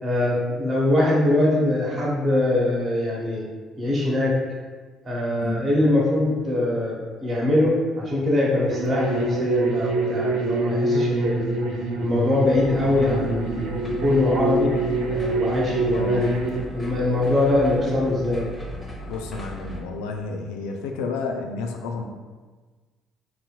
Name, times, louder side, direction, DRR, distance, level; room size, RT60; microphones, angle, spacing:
voice 1, 0.0-3.5 3.8-4.4 5.0-11.6 12.0-13.7 14.0-14.7 15.1-16.3 16.7-18.5, left 2 dB, 35° right, -4 dB, 0.9 m, -22 dB
sound 1, 8.7-16.6, right 2 dB, 60° right, 0.4 m, -25 dB
sound 2, 12.4-19.8, right 1 dB, 15° left, 0.9 m, -37 dB
voice 2, 15.9-16.4 19.1-22.0, left 4 dB, 70° left, 3 dB, 0.3 m, -31 dB
4.1 x 2.8 x 2.2 m, 1.4 s
figure-of-eight pair, 50°, 0 cm